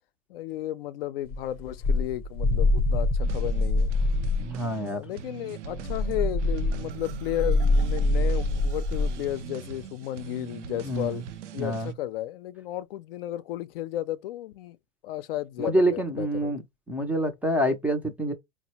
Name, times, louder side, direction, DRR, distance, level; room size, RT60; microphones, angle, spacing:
voice 1, 0.3-3.9 4.8-11.2 11.5-14.8 15.0-16.5, left 13 dB, 55° left, 0.5 m, -33 dB
sound 1, 1.3-4.5 5.7-9.2, left 2 dB, 25° left, 0.7 m, -25 dB
sound 2, 3.2-11.9, right 7 dB, 90° right, 0.6 m, -42 dB
voice 2, 4.4-5.0 10.8-11.2 11.6-11.9 15.6-16.6 16.9-18.3, right 1 dB, 5° right, 0.4 m, -26 dB
Marimba xylophone, 6.0-9.4, right 5 dB, 70° right, 1.0 m, -46 dB
4.1 x 2.1 x 2.9 m
hypercardioid pair, 120°, 35 cm